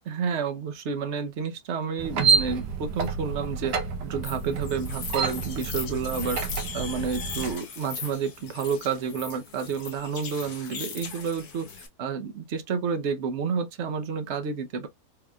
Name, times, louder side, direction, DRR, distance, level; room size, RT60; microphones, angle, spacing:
voice 1, 0.1-3.7 4.0-6.4 6.7-11.7 12.0-14.9, right 6 dB, 50° right, 0.9 m, -30 dB
sound 1, 2.0-7.5, right 5 dB, 90° right, 1.4 m, -28 dB
sound 2, 4.2-11.9, left 6 dB, 65° left, 1.6 m, -39 dB
4.7 x 3.2 x 2.3 m
omnidirectional pair, 1.8 m